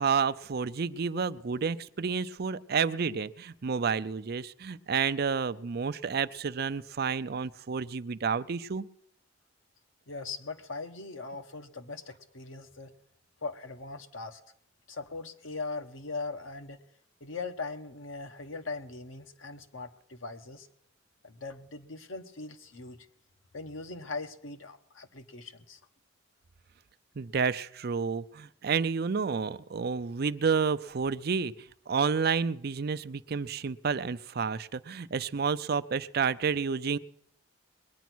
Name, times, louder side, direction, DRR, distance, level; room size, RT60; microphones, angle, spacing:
voice 1, 0.0-8.8 27.2-31.5 31.9-37.0, right 5 dB, 55° right, 13 dB, 0.5 m, -30 dB
voice 2, 10.1-12.9 13.4-14.4 14.9-16.8 17.2-20.7 21.2-23.0 23.5-25.8, left 3 dB, 85° left, 7 dB, 1.2 m, -40 dB
21.0 x 9.3 x 6.1 m, 0.73 s
head